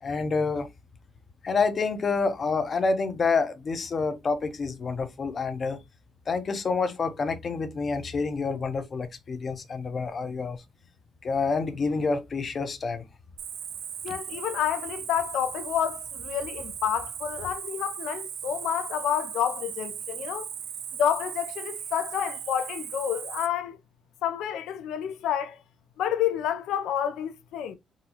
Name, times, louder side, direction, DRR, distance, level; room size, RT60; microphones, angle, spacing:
voice 1, 0.0-0.7 1.4-5.8 6.3-10.6 11.2-13.1, left 4 dB, 40° left, 0.6 m, -28 dB
Cricket, 13.4-23.5, right 8 dB, 85° right, 0.6 m, -37 dB
voice 2, 14.0-20.5 21.0-23.8 24.2-25.6 26.0-27.8, left 9 dB, 85° left, 0.4 m, -29 dB
3.7 x 2.0 x 2.8 m
cardioid pair, 90°, 0 cm